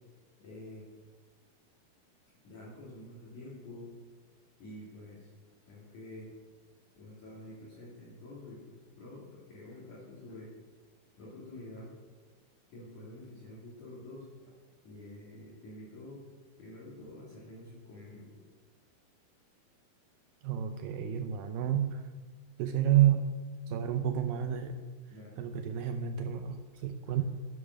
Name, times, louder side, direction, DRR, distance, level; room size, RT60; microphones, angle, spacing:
voice 1, 0.4-0.9 2.4-3.9 4.6-5.3 5.6-6.3 7.0-10.5 11.2-11.9 12.7-14.5 14.8-16.2 16.6-18.3 25.1-25.5 27.0-27.2, left 1 dB, 50° left, -6 dB, 3.7 m, -48 dB
voice 2, 20.4-22.1 22.6-23.4 23.7-24.8 25.4-27.2, right 10 dB, 80° right, 8 dB, 2.1 m, -29 dB
10.5 x 10.5 x 6.5 m, 1.4 s
omnidirectional pair, 4.7 m